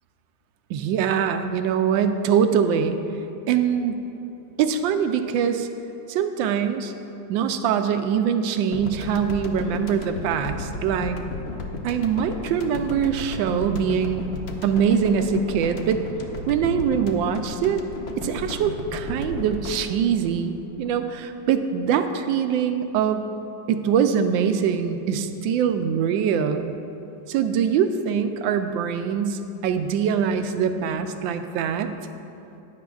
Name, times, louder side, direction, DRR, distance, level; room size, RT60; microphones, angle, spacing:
voice 1, 0.7-3.0 3.5-4.0 4.6-5.7 6.1-6.9 7.3-11.2 11.8-14.3 14.6-16.0 16.5-17.8 18.2-23.3 23.7-26.7 27.3-31.9, right 7 dB, 80° right, 8 dB, 1.3 m, -23 dB
sound 1, 8.7-21.2, left 3 dB, 60° left, 0.6 m, -34 dB
15.0 x 10.5 x 2.4 m, 2.8 s
omnidirectional pair, 2.1 m